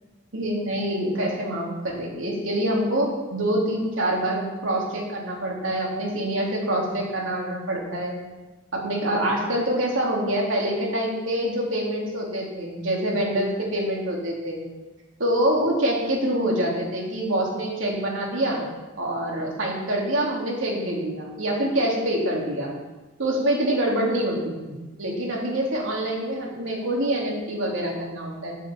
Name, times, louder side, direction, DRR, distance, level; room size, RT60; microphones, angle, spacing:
voice 1, 0.3-8.1 8.7-14.6 15.2-18.6 19.0-22.7 23.2-28.6, right 1 dB, 80° right, -2 dB, 3.3 m, -25 dB
9.4 x 8.1 x 7.3 m, 1.2 s
head